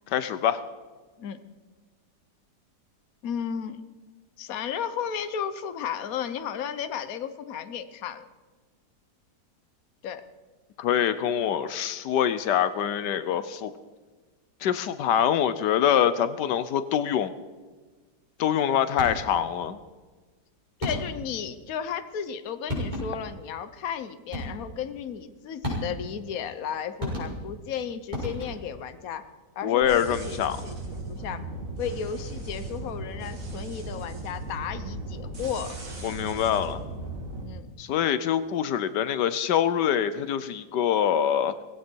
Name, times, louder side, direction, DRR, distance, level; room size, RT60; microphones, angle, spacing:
voice 1, 0.1-0.6 10.8-13.7 14.6-17.3 18.4-19.8 29.6-30.6 36.0-36.8 37.8-41.5, left 9 dB, 85° left, 13 dB, 1.4 m, -25 dB
voice 2, 3.2-3.8 4.4-8.3 10.0-10.2 20.8-29.3 29.5-31.4 31.8-35.8 37.4-37.7, left 8 dB, 60° left, 11 dB, 1.3 m, -34 dB
sound 1, 19.0-19.4 20.8-21.3 22.3-22.4 22.7-23.3 24.3-24.8 25.6-26.2 27.0-27.7 28.1-28.8, left 1 dB, 25° right, 6.4 m, -33 dB
sound 2, 29.8-37.4, right 2 dB, 50° right, 3.2 m, -37 dB
18.5 x 16.5 x 4.6 m, 1.4 s
omnidirectional pair, 1.8 m